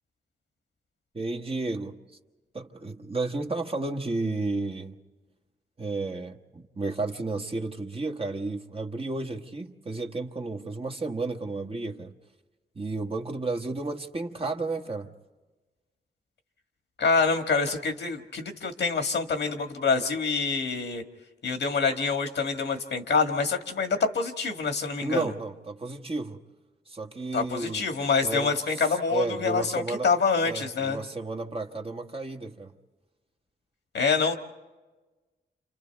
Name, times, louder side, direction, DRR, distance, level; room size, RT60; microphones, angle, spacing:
voice 1, 1.1-2.0 2.5-5.0 5.8-12.1 12.7-15.1 25.0-26.4 26.9-27.9 28.2-28.5 29.1-30.1 30.4-32.7, right 3 dB, 30° right, 1.3 m, -32 dB
voice 2, 17.0-21.0 21.4-25.3 27.3-31.0 33.9-34.3, left 5 dB, 75° left, 1.7 m, -26 dB
29.5 x 27.5 x 3.5 m
cardioid pair, 85°, 18 cm